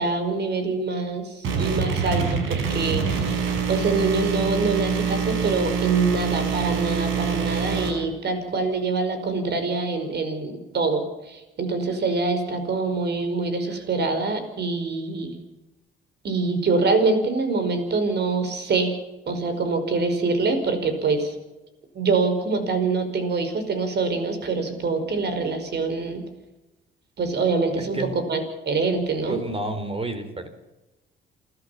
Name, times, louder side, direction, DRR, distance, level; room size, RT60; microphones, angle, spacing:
voice 1, 0.0-3.4 3.7-15.3 16.2-19.0 19.3-21.4 21.9-26.2 27.2-29.4, right 3 dB, 55° right, 8 dB, 5.5 m, -25 dB
sound 1, 1.4-7.9, right 6 dB, 85° right, 5.7 m, -25 dB
voice 2, 27.8-28.1 29.3-30.5, right 2 dB, 30° right, 9 dB, 4.0 m, -30 dB
29.0 x 13.5 x 7.2 m, 1.0 s
cardioid pair, 90°, 20 cm